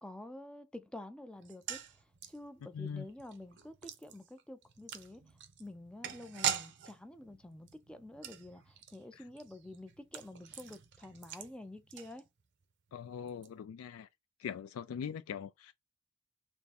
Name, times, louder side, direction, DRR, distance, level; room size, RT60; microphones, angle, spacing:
voice 1, 0.0-12.3, left 1 dB, 5° left, 0.3 m, -49 dB
sound 1, 1.4-12.6 12.9-13.0 13.3-13.5, right 8 dB, 55° right, 0.6 m, -43 dB
voice 2, 2.7-3.1 9.1-9.2 12.9-14.1 14.4-15.7, left 7 dB, 85° left, 0.3 m, -41 dB
3.5 x 2.6 x 4.0 m
head